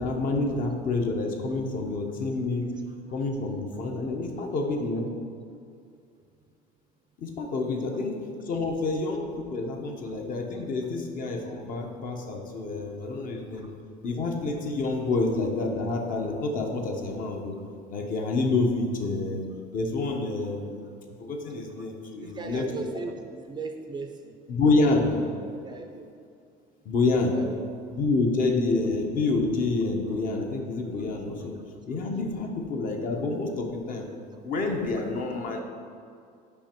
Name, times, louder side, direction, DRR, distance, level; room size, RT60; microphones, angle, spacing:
voice 1, 0.0-2.7 3.1-5.1 7.2-8.2 8.4-13.7 14.0-17.5 17.9-19.4 19.7-22.6 24.5-25.1 26.8-27.4 27.9-31.5 31.9-34.1 34.4-35.6, left 3 dB, 50° left, 3 dB, 0.9 m, -28 dB
voice 2, 22.2-24.3 25.5-26.1 27.3-27.7, right 4 dB, 25° right, 4 dB, 0.4 m, -37 dB
5.4 x 5.4 x 4.5 m, 2.3 s
cardioid pair, 135°, 19 cm